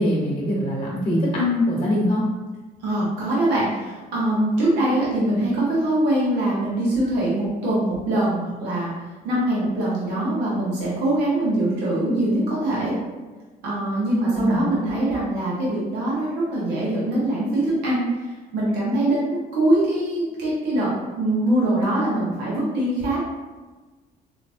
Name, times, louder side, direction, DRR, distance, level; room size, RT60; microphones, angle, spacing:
voice 1, 0.0-2.2 14.4-14.7, left 1 dB, 35° left, -4 dB, 1.1 m, -22 dB
voice 2, 2.8-8.9 9.2-13.0 13.6-20.9 21.2-23.2, right 1 dB, 90° right, -7 dB, 1.1 m, -23 dB
3.4 x 3.0 x 2.6 m, 1.3 s
cardioid pair, 110°, 17 cm